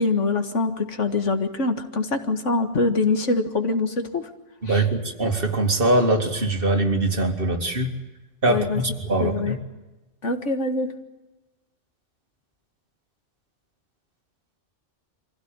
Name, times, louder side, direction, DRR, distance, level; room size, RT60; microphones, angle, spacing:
voice 1, 0.0-4.3 4.7-4.8 8.5-8.8 9.2-9.6 10.2-11.0, left 3 dB, 75° left, 6 dB, 2.1 m, -24 dB
voice 2, 4.6-7.9 8.4-9.5, right 2 dB, 50° right, 3 dB, 2.5 m, -22 dB
24.5 x 16.5 x 8.9 m, 1.1 s
omnidirectional pair, 1.2 m